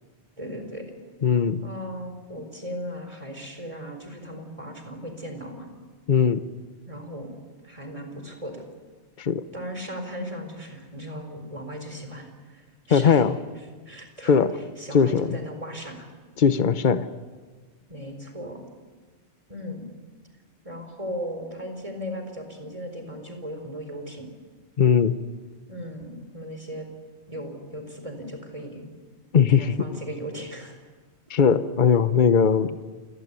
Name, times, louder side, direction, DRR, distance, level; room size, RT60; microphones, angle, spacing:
voice 1, 0.4-0.9 1.6-5.7 6.9-7.3 7.6-8.6 9.5-13.2 13.9-14.4 14.8-16.1 17.9-18.7 19.5-19.9 20.6-24.3 25.7-26.9 27.3-28.8 29.5-30.8, equal, 30° right, 5 dB, 4.4 m, -37 dB
voice 2, 1.2-1.6 6.1-6.4 9.2-9.4 12.9-13.4 14.3-14.5 14.9-15.4 16.4-17.1 24.8-25.1 29.3-30.0 31.3-32.8, left 6 dB, 45° left, 12 dB, 1.1 m, -19 dB
28.5 x 18.0 x 9.7 m, 1.4 s
omnidirectional pair, 1.1 m